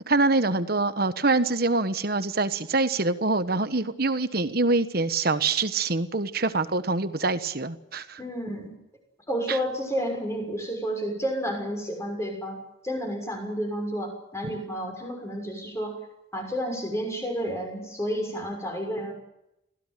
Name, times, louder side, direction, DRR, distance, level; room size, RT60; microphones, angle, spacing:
voice 1, 0.1-8.2 9.5-9.6, right 3 dB, 50° right, 11 dB, 1.3 m, -25 dB
voice 2, 8.2-8.7 9.3-12.6 12.8-16.0 16.3-19.1, equal, 15° left, 2 dB, 6.2 m, -31 dB
24.0 x 16.5 x 9.3 m, 0.87 s
head